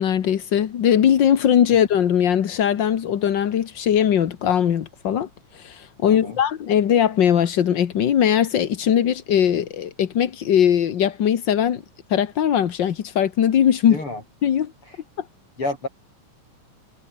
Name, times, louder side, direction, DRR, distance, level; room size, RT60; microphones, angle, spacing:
voice 1, 0.0-5.3 5.5-11.8 12.1-14.0 14.4-14.7, left 9 dB, 60° left, 1.2 m, -20 dB
voice 2, 6.1-6.4 13.9-14.2 14.8-15.0 15.6-15.9, left 2 dB, 40° left, 8.8 m, -30 dB
omnidirectional pair, 3.7 m